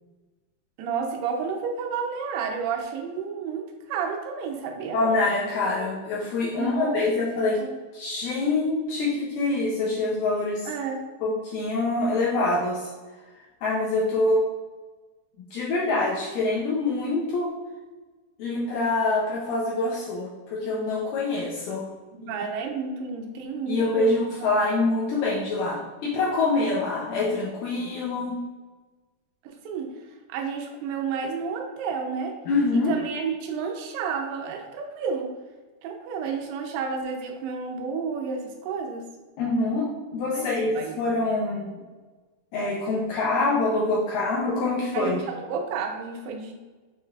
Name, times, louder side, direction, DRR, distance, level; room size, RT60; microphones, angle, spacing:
voice 1, 0.8-5.0 6.5-7.0 7.6-7.8 10.7-11.1 22.1-24.1 29.4-29.9 30.3-32.3 32.9-35.3 35.8-39.0 40.3-40.4 40.8-40.9 44.9-46.5, right 5 dB, 85° right, 2 dB, 2.6 m, -31 dB
voice 2, 4.9-7.6 7.9-10.7 11.2-12.9 13.6-14.4 15.5-17.5 18.4-21.9 22.2-22.4 23.7-28.4 32.5-33.0 39.4-41.8 42.5-45.2, left 2 dB, 80° left, -4 dB, 2.0 m, -25 dB
6.4 x 3.1 x 2.3 m, 1.3 s
omnidirectional pair, 4.5 m